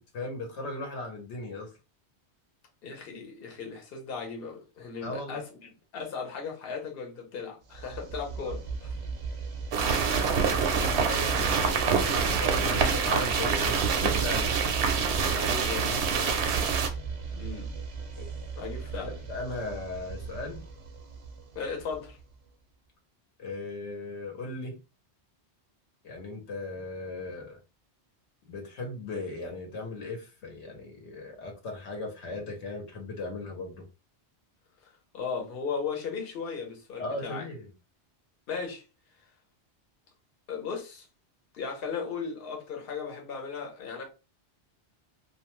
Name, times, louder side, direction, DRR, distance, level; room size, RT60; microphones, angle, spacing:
voice 1, 0.0-1.7 5.0-5.4 8.4-8.5 10.2-14.5 18.2-18.3 18.9-20.6 23.4-24.8 26.0-27.6 28.5-33.8 37.0-37.7, left 2 dB, 90° left, 1.1 m, -37 dB
voice 2, 2.8-8.9 11.0-11.1 15.3-16.1 17.3-17.7 18.6-19.2 21.5-22.2 34.8-37.4 38.5-38.8 40.5-41.1 41.5-44.0, left 5 dB, 60° left, 1.0 m, -37 dB
sound 1, 7.7-22.5, right 4 dB, 40° right, 0.5 m, -37 dB
sound 2, 9.7-16.9, right 6 dB, 75° right, 0.8 m, -26 dB
2.5 x 2.2 x 2.9 m
omnidirectional pair, 1.1 m